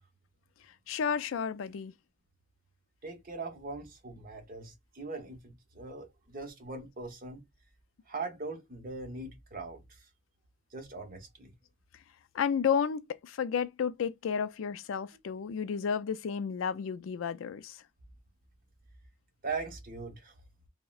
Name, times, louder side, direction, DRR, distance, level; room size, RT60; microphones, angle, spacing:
voice 1, 0.9-1.9 12.3-17.8, left 7 dB, 90° left, 0.4 m, -32 dB
voice 2, 3.0-7.4 8.1-9.8 10.7-11.5 19.4-20.3, right 3 dB, 45° right, 0.9 m, -40 dB
3.6 x 2.1 x 2.3 m
head